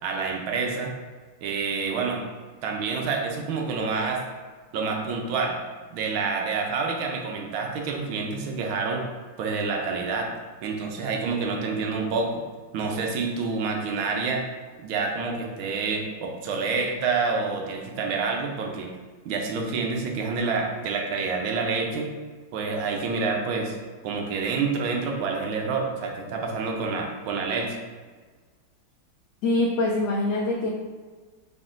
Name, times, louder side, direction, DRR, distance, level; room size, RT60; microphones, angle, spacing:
voice 1, 0.0-0.9 1.4-2.2 2.6-4.2 4.7-5.6 5.9-9.0 9.4-10.3 10.6-12.4 12.7-14.4 14.8-18.9 19.2-22.1 22.5-23.8 24.0-27.7, right 4 dB, 90° right, 1 dB, 1.4 m, -28 dB
voice 2, 29.4-30.7, left 2 dB, 75° left, -1 dB, 1.0 m, -24 dB
4.2 x 3.7 x 2.5 m, 1.4 s
omnidirectional pair, 2.1 m